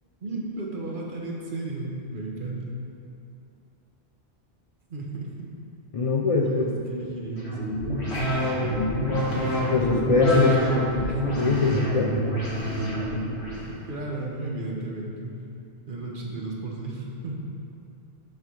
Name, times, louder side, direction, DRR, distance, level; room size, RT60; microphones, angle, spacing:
voice 1, 0.2-2.8 4.9-5.3 6.4-7.6 10.4-10.8 11.1-11.2 11.9-12.0 13.9-15.4 15.9-17.4, right 2 dB, 55° right, -2 dB, 1.0 m, -34 dB
voice 2, 5.9-6.7 9.7-10.6 11.4-12.1, left 4 dB, 55° left, 0 dB, 0.4 m, -22 dB
sound 1, 7.4-13.7, equal, 85° left, 1.6 m, -26 dB
6.8 x 3.3 x 6.1 m, 2.6 s
omnidirectional pair, 1.1 m